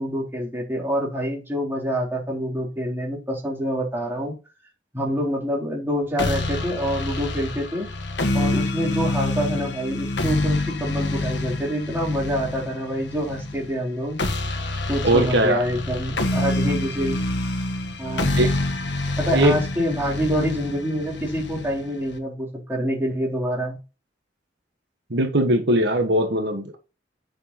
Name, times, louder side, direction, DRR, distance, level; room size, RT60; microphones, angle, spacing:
voice 1, 0.0-4.3 4.9-7.9 8.3-14.2 14.9-17.2 18.0-18.5 19.2-23.8, equal, 10° right, 3.8 m, -26 dB
sound 1, 6.2-22.2, left 2 dB, 70° left, 1.6 m, -27 dB
voice 2, 15.0-15.6 18.4-18.5 19.3-19.6 25.1-26.8, right 1 dB, 65° right, 1.4 m, -20 dB
9.1 x 6.7 x 4.3 m
head